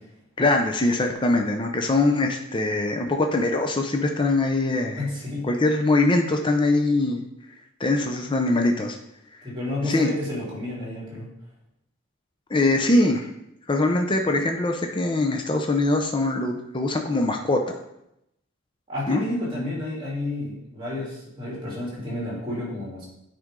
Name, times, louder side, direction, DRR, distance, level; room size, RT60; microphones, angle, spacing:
voice 1, 0.4-5.1 5.4-7.2 7.8-9.0 9.4-9.5 9.8-10.1 12.5-13.3 13.7-17.7 19.1-19.2, left 2 dB, 25° left, 3 dB, 0.6 m, -22 dB
voice 2, 5.0-5.5 9.4-11.2 18.9-23.1, left 1 dB, 25° right, -6 dB, 3.1 m, -30 dB
9.2 x 5.1 x 3.7 m, 0.83 s
head